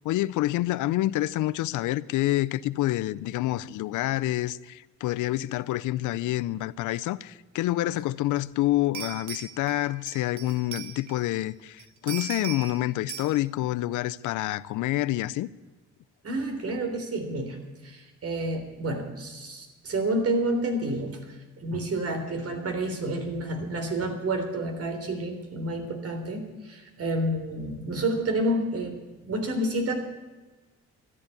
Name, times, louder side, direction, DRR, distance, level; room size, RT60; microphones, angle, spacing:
voice 1, 0.0-15.5, left 16 dB, 85° left, 0.6 m, -27 dB
sound 1, 8.4-8.5 8.9-11.4 11.8-12.8 13.1-13.3, right 9 dB, 70° right, 1.7 m, -38 dB
voice 2, 16.2-17.6 17.8-29.9, right 1 dB, 50° right, 3.5 m, -29 dB
13.5 x 11.0 x 8.3 m
cardioid pair, 90°, 30 cm